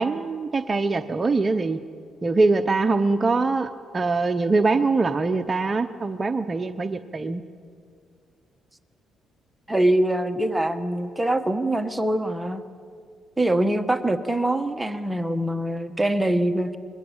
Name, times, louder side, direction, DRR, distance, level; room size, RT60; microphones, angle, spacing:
voice 1, 0.0-1.8 2.2-7.4, right 3 dB, 30° right, 8 dB, 0.9 m, -23 dB
voice 2, 9.7-12.6 13.4-16.8, right 1 dB, 10° right, 7 dB, 1.3 m, -23 dB
25.5 x 22.0 x 8.9 m, 2.2 s
cardioid pair, 90°, 0 cm